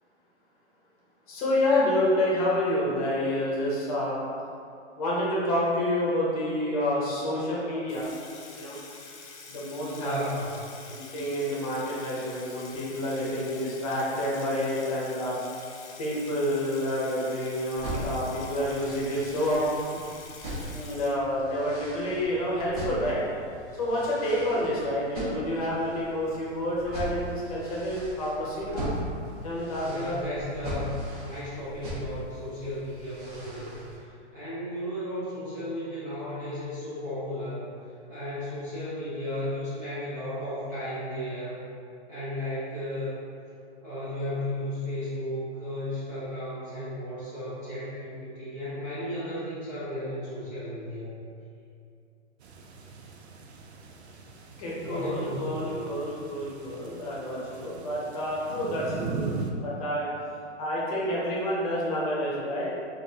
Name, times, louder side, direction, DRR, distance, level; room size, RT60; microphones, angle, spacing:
voice 1, 1.3-4.2 5.0-8.1 8.5-8.8 9.5-10.1 10.9-15.4 16.0-19.6 20.7-23.2 23.8-28.9 29.4-30.2 54.6-59.3 59.6-60.1 60.6-62.7, left 1 dB, 30° left, -6 dB, 0.8 m, -28 dB
Water tap faucet / Sink (filling or washing), 7.9-21.6, left 4 dB, 75° left, 0.8 m, -46 dB
voice 2, 9.9-10.7 29.8-30.9 31.2-33.7 34.0-37.7 38.1-41.6 42.1-43.2 43.8-51.2 54.8-55.7, left 1 dB, 15° right, -13 dB, 0.5 m, -34 dB
sound 1, 17.7-34.0, equal, 35° right, 1.1 m, -39 dB
sound 2, 52.4-59.5, right 5 dB, 65° right, 0.6 m, -40 dB
5.2 x 2.6 x 2.8 m, 2.5 s
hypercardioid pair, 165°, 35 cm